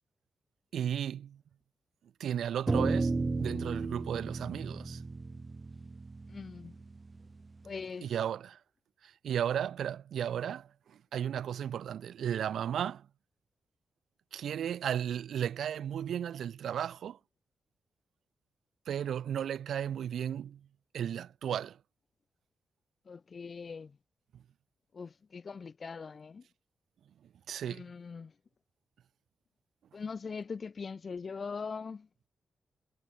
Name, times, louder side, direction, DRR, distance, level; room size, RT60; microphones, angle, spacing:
voice 1, 0.7-1.4 2.2-5.0 8.0-8.6 9.2-10.7 11.1-13.0 14.3-17.2 18.9-20.6 20.9-21.8 27.5-27.8, right 9 dB, 85° right, 1.5 m, -34 dB
sound 1, 2.7-7.2, right 3 dB, 35° right, 0.4 m, -33 dB
voice 2, 6.3-6.7 7.6-8.1 23.1-24.0 24.9-26.4 27.6-28.3 29.9-32.1, left 5 dB, 50° left, 2.9 m, -41 dB
cardioid pair, 70°, 0 cm